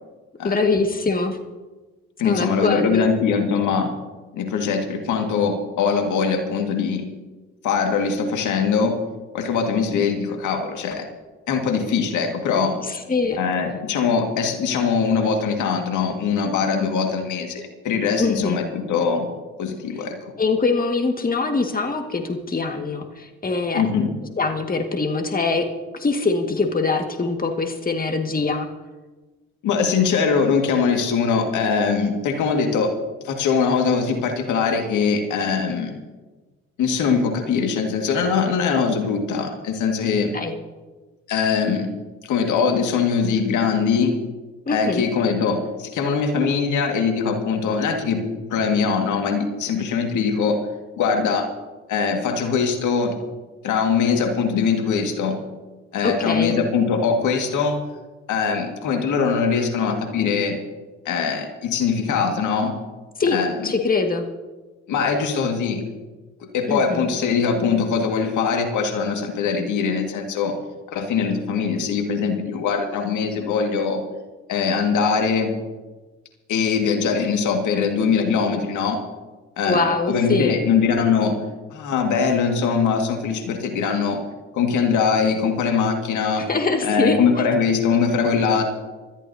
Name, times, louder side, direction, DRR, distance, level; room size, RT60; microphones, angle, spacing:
voice 1, 0.4-1.4 2.2-3.1 12.9-13.4 18.2-18.6 20.4-23.8 24.4-25.7 25.9-28.7 40.3-40.5 44.7-45.0 56.0-56.5 63.2-64.2 66.7-67.0 79.6-80.5 86.4-87.2, left 3 dB, 30° left, 4 dB, 1.8 m, -23 dB
voice 2, 2.2-3.9 4.3-7.1 7.6-9.0 9.3-11.1 11.5-12.8 13.4-19.3 19.6-20.2 23.7-24.1 29.6-32.9 33.2-36.0 36.8-40.3 41.3-41.9 42.2-44.1 44.7-50.6 51.0-51.5 51.9-53.2 53.6-55.4 55.9-57.8 58.3-60.6 61.1-62.8 63.3-63.5 64.9-65.8 66.4-70.6 70.9-74.0 74.5-75.6 76.5-79.0 79.6-81.4 81.7-84.2 84.5-86.5 86.8-88.6, left 5 dB, 70° left, 4 dB, 2.0 m, -22 dB
25.0 x 13.5 x 2.8 m, 1.2 s
hypercardioid pair, 50°, 31 cm